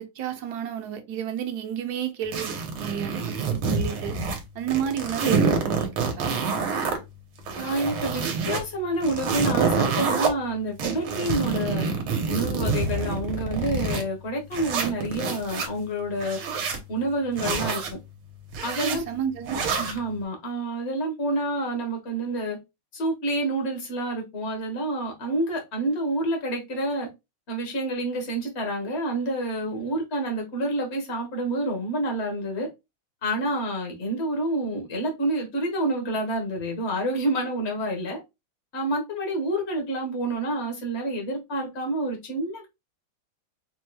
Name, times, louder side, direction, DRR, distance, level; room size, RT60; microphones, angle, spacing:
voice 1, 0.0-4.2 4.5-6.4 18.8-19.6, right 8 dB, 60° right, 1.2 m, -31 dB
sound 1, 2.3-4.4 4.7-7.0 7.4-8.6 9.0-10.3 10.8-14.0 14.5-15.7 16.2-16.8 17.4-17.9 18.5-19.0 19.5-20.0, right 5 dB, 85° right, 1.8 m, -27 dB
voice 2, 7.5-11.9 12.3-16.4 16.9-18.0 18.6-19.0 19.8-22.6 22.9-27.1 27.5-32.7 33.2-38.2 38.7-42.7, right 1 dB, 35° left, 1.3 m, -28 dB
5.1 x 3.1 x 2.3 m
omnidirectional pair, 2.3 m